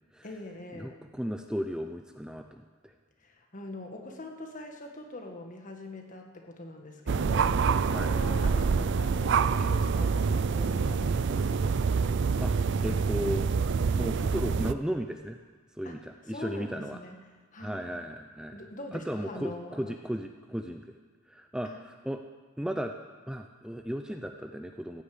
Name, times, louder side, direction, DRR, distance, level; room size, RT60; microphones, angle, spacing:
voice 1, 0.2-1.0 3.2-11.8 15.8-16.0 16.3-17.2 17.5-18.0 18.5-19.9 21.6-21.8, left 1 dB, 40° left, 3 dB, 1.7 m, -43 dB
voice 2, 0.7-2.9 7.9-8.1 12.4-13.5 13.9-15.4 15.8-17.0 17.6-18.6 18.9-21.0 21.3-22.2 22.6-22.9 23.3-25.0, equal, 5° right, 5 dB, 0.5 m, -35 dB
sound 1, 7.1-14.7, right 5 dB, 60° right, 0.4 m, -26 dB
15.0 x 8.2 x 8.5 m, 1.5 s
head